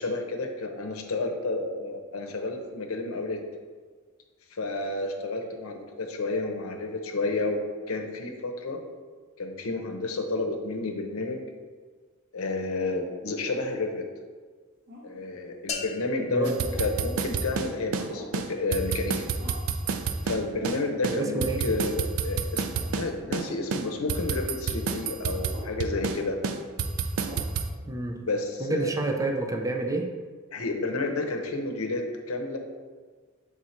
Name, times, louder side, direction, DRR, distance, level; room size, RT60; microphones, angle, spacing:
voice 1, 0.0-3.4 4.5-7.6 7.9-8.8 9.4-11.4 12.3-14.0 15.0-16.5 16.8-19.3 20.2-26.4 28.2-28.9 30.5-32.6, left 2 dB, 85° left, 3 dB, 0.7 m, -30 dB
sound 1, 14.9-15.2 16.6-17.0 18.1-18.4 19.4-19.8 20.5-20.7 21.4-21.6 22.7-22.9 23.3-23.5 24.7-24.9 25.5-25.8 27.2-27.5, left 1 dB, 45° right, 1.3 m, -44 dB
sound 2, 15.7-17.7, left 6 dB, 30° left, 0.5 m, -39 dB
sound 3, 16.4-18.1 18.3-18.5 18.7-20.8 21.0-23.1 23.3-23.5 23.7-26.2 26.4-27.7, right 5 dB, 75° right, 0.4 m, -29 dB
voice 2, 21.0-21.6 27.9-28.3 28.6-30.1, right 2 dB, 15° right, 4 dB, 0.4 m, -29 dB
6.3 x 3.6 x 4.2 m, 1.5 s
head